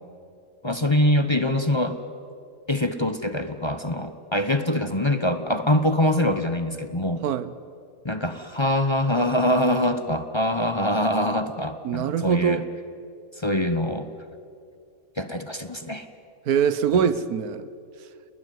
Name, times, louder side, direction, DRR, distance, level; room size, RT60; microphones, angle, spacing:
voice 1, 0.6-2.0 2.7-7.2 8.0-12.6 13.4-14.1 15.2-16.1 16.9-17.1, left 1 dB, 20° left, 0.9 m, -24 dB
voice 2, 11.8-12.7 16.5-17.7, right 8 dB, 85° right, 1.4 m, -23 dB
29.0 x 20.0 x 9.3 m
omnidirectional pair, 1.5 m